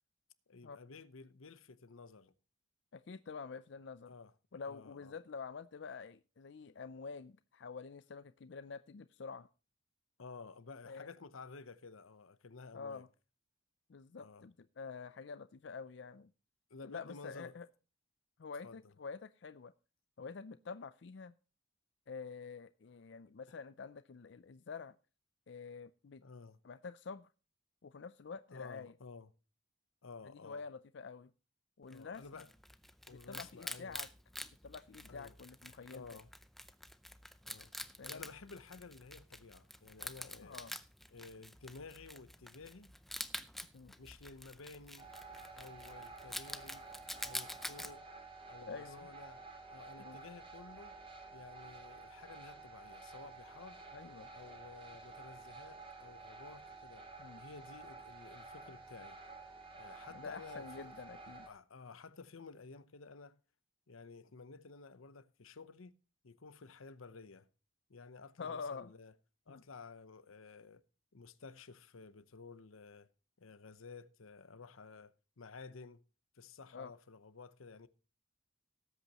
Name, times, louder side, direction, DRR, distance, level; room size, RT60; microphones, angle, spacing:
voice 1, 0.5-2.3 4.1-4.3 4.6-5.2 10.2-13.1 14.2-14.5 16.7-17.5 18.6-18.9 23.5-23.6 26.2-26.6 28.5-29.3 30.0-30.6 31.9-32.5 33.1-34.0 35.1-35.4 35.9-36.3 37.4-37.7 38.1-40.6 41.1-42.9 44.0-45.1 45.5-46.8 47.2-48.1 48.5-49.4 49.7-51.0 51.3-53.8 54.3-57.1 57.4-59.2 59.7-60.9 61.5-63.4 63.9-65.9 66.2-67.5 67.9-69.1 69.5-70.8 71.1-73.1 73.4-76.0 76.3-77.9, left 4 dB, 85° left, 0.8 m, -53 dB
voice 2, 2.9-4.1 4.5-9.5 10.9-11.1 12.7-13.1 13.9-16.3 16.8-17.7 18.4-19.7 20.2-21.3 22.1-24.9 25.5-26.2 26.6-27.3 27.8-28.9 30.4-31.3 31.8-32.2 33.1-34.1 34.6-36.0 38.0-38.2 40.4-40.7 43.7-44.0 48.7-49.1 50.0-50.2 53.9-54.3 57.2-57.4 60.1-61.5 68.4-68.9 69.5-69.6 76.7-76.9, left 5 dB, 60° left, 0.4 m, -47 dB
Wild animals, 31.9-47.9, left 1 dB, ahead, 0.5 m, -47 dB
sound 1, 45.0-61.5, right 3 dB, 25° right, 2.2 m, -52 dB
18.5 x 8.3 x 2.9 m
head